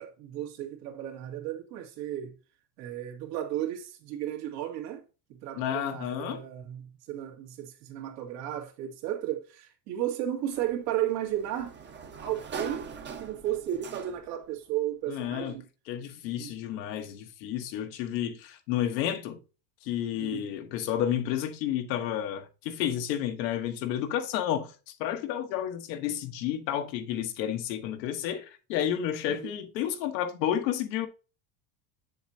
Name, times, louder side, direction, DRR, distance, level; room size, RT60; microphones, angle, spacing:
voice 1, 0.0-2.3 2.8-5.0 5.3-11.7 12.2-12.9 13.2-15.6 16.4-16.5 20.1-20.5 29.3-29.5, right 12 dB, 80° right, 2.2 m, -34 dB
voice 2, 5.6-6.4 15.1-15.6 15.9-19.4 19.8-31.1, left 10 dB, 80° left, 1.4 m, -31 dB
Sliding door, 10.5-14.5, right 5 dB, 20° right, 0.8 m, -42 dB
7.4 x 7.0 x 2.8 m
supercardioid pair, 130°, 50 cm